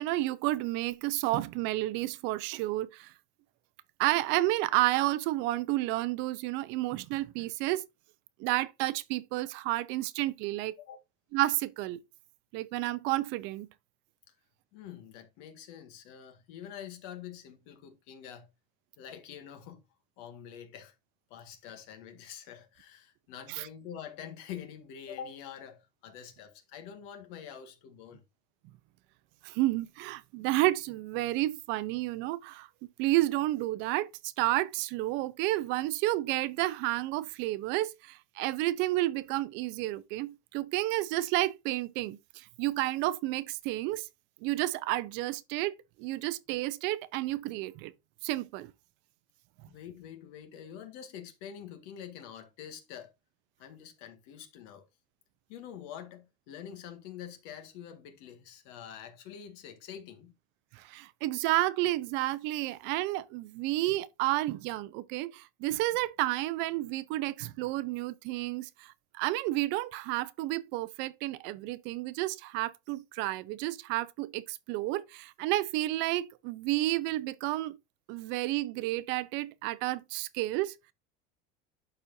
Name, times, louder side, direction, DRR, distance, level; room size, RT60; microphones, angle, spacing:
voice 1, 0.0-3.1 4.0-7.8 8.4-10.8 11.3-12.0 12.5-13.7 23.5-23.7 29.4-32.7 33.0-44.1 44.4-47.9 48.2-48.7 60.7-77.8 78.1-80.7, right 17 dB, 60° right, 0.7 m, -31 dB
voice 2, 14.7-18.5 19.0-19.8 20.2-20.9 21.3-28.2 49.7-53.1 53.6-54.8 55.5-60.3, left 9 dB, 70° left, 1.8 m, -46 dB
11.5 x 4.3 x 2.7 m
supercardioid pair, 130°, 21 cm